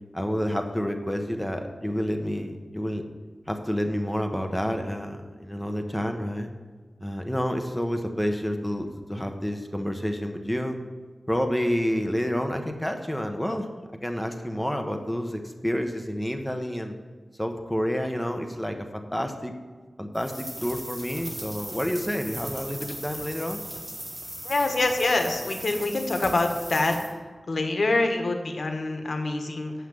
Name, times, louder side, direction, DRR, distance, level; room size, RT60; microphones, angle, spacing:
voice 1, 0.1-3.0 3.5-6.5 7.0-10.8 11.3-13.7 14.0-16.9 17.4-19.5 20.0-23.6, equal, 5° left, 5 dB, 1.0 m, -29 dB
sound 1, 20.1-27.1, equal, 15° right, 1.7 m, -38 dB
voice 2, 24.4-27.0 27.5-29.7, left 2 dB, 65° left, 4 dB, 1.4 m, -25 dB
8.2 x 5.8 x 7.4 m, 1.4 s
wide cardioid pair, 65°, 0 cm